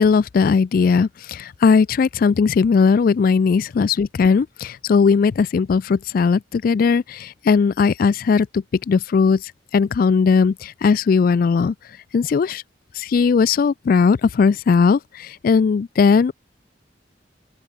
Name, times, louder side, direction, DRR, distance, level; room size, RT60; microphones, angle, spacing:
voice 1, 0.0-9.4 9.7-11.7 12.1-12.6 13.0-16.3, left 5 dB, 50° left, 0.3 m, -18 dB
open air
head